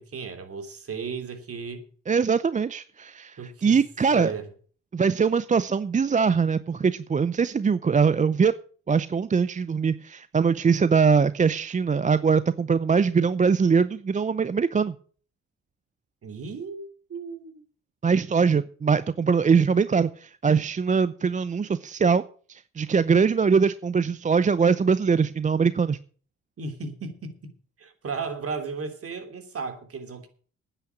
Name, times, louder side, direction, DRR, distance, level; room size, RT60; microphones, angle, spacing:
voice 1, 0.0-1.8 3.4-3.8 4.1-4.5 16.2-17.6 26.6-27.3 27.8-30.3, right 4 dB, 50° right, 3.1 m, -35 dB
voice 2, 2.1-4.3 4.9-8.5 8.9-14.9 18.0-22.2 22.5-26.0, right 5 dB, 25° right, 0.6 m, -22 dB
9.8 x 8.9 x 8.3 m
cardioid pair, 90°, 30 cm